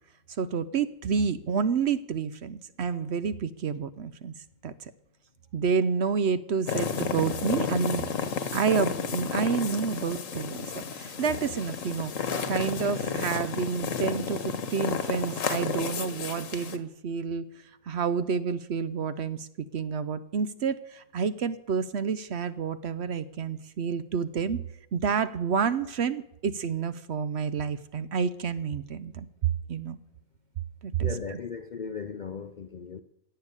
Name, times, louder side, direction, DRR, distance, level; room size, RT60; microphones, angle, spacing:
voice 1, 0.4-4.3 4.6-4.9 5.5-8.1 8.5-17.5 17.9-24.6 24.9-29.3 29.7-30.0 30.8-31.4, right 6 dB, 60° right, 0.9 m, -29 dB
sound 1, 6.7-16.8, left 6 dB, 70° left, 1.4 m, -32 dB
voice 2, 31.0-33.0, left 6 dB, 50° left, 0.5 m, -37 dB
17.0 x 6.8 x 9.7 m
omnidirectional pair, 1.4 m